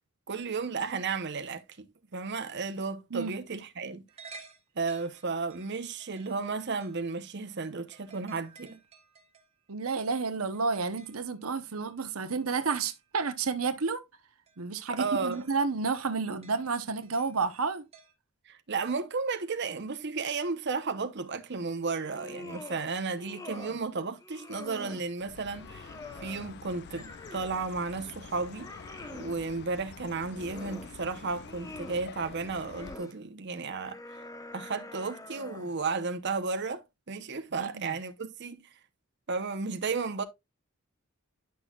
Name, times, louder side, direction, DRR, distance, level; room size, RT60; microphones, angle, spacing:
voice 1, 0.3-4.0 4.8-8.8 14.9-15.4 18.5-28.7 29.1-34.0 34.5-38.7 39.3-40.2, right 4 dB, 55° right, 0.9 m, -33 dB
sound 1, 4.1-7.2 7.9-9.6 10.5-11.3 11.6-13.1 13.6-13.7 14.5-14.7 15.2-17.7 17.9-18.1, right 4 dB, 30° right, 1.5 m, -54 dB
voice 2, 9.7-14.0 14.6-17.8 37.6-37.9, right 4 dB, 85° right, 0.9 m, -31 dB
sound 2, 22.0-22.9 23.1-23.8 24.2-25.1 25.5-27.6 28.0-29.4 30.1-31.0 31.3-32.1 32.6-33.1 33.7-35.8, left 2 dB, 15° left, 1.0 m, -46 dB
Chirp tweet, 25.2-33.0, left 6 dB, 50° left, 0.4 m, -47 dB
10.5 x 6.2 x 2.4 m
head